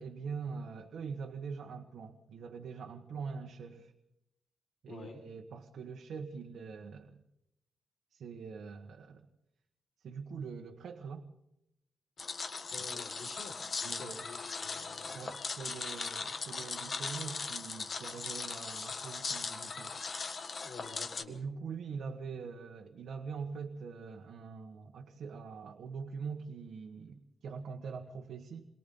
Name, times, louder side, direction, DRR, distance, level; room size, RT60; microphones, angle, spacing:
voice 1, 0.0-3.9 4.8-7.2 8.1-9.3 10.0-11.2 12.9-13.0 13.8-14.2 15.1-19.9 21.3-28.7, right 5 dB, 80° right, 3 dB, 1.6 m, -43 dB
voice 2, 4.9-5.2 12.6-15.3 20.6-21.4, left 4 dB, 60° left, 1 dB, 5.2 m, -49 dB
sound 1, 12.2-21.2, left 4 dB, 40° left, 1.6 m, -39 dB
29.0 x 23.0 x 3.9 m, 0.82 s
wide cardioid pair, 135°, 0 cm